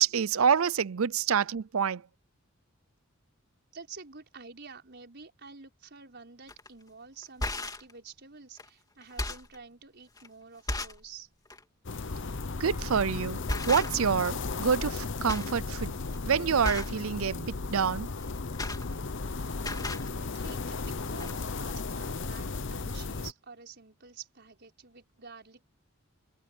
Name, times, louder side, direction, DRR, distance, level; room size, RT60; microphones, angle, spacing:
voice 1, 0.0-2.0 12.6-15.9 16.3-18.1, right 7 dB, 75° right, 0.6 m, -27 dB
voice 2, 3.7-11.3 19.6-25.6, right 5 dB, 55° right, 5.5 m, -49 dB
sound 1, 6.5-6.7 7.2-7.9 8.6-8.7 9.0-9.6 10.2-10.3 10.7-11.1 11.5-11.6 12.8-13.0 13.5-14.2 14.5-15.0 15.3-15.6 15.9-16.2 16.6-17.0 18.2-19.3 19.6-20.1 20.9-21.0 21.2-21.3, left 2 dB, 20° left, 3.3 m, -35 dB
sound 2, 11.8-23.3, left 3 dB, 60° left, 0.9 m, -35 dB
head